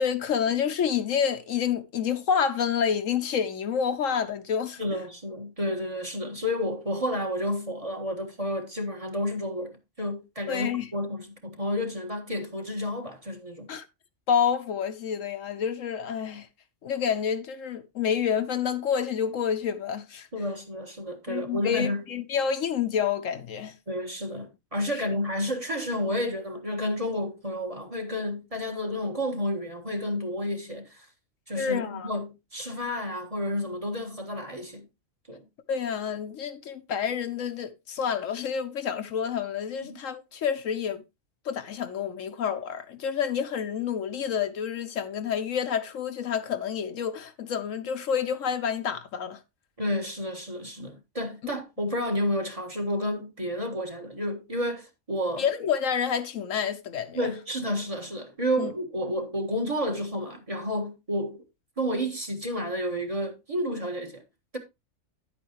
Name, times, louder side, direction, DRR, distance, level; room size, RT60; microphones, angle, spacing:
voice 1, 0.0-4.8 10.5-10.9 13.7-13.9 14.3-16.5 16.8-20.3 21.3-23.7 24.9-25.0 31.6-32.1 35.7-41.0 41.4-49.4 55.4-57.3 58.6-58.7, left 7 dB, 70° left, 1.1 m, -28 dB
voice 2, 4.8-13.7 20.3-22.0 23.9-31.1 31.5-34.9 35.3-35.4 39.8-40.0 49.8-55.4 57.1-61.4 61.8-64.2, left 1 dB, 25° right, 1.6 m, -31 dB
10.0 x 8.5 x 2.9 m
omnidirectional pair, 1.4 m